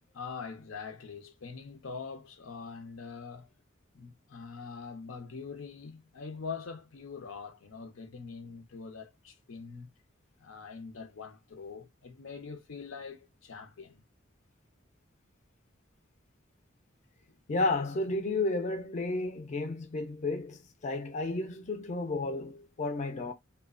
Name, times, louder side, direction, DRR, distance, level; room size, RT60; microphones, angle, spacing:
voice 1, 0.1-3.5 3.9-9.9 10.4-14.0, left 5 dB, 80° left, 0.6 m, -43 dB
voice 2, 17.5-23.3, left 2 dB, 35° left, 0.4 m, -32 dB
2.7 x 2.1 x 2.3 m
head